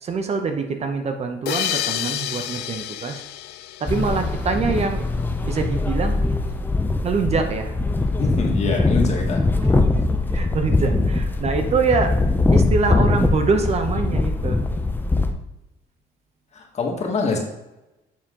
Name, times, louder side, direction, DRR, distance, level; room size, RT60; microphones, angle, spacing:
voice 1, 0.0-3.2 3.8-5.1 5.5-6.2 7.0-7.7 9.7-9.8 10.3-12.1 12.5-14.6, right 4 dB, 40° right, 6 dB, 0.8 m, -24 dB
sound 1, 1.5-4.8, left 13 dB, 75° left, 0.4 m, -29 dB
sound 2, 3.9-15.3, left 2 dB, 10° left, 0.6 m, -21 dB
voice 2, 8.2-9.4 16.5-17.4, left 3 dB, 40° left, 1 dB, 1.6 m, -24 dB
7.3 x 4.3 x 3.7 m, 0.96 s
cardioid pair, 110°, 17 cm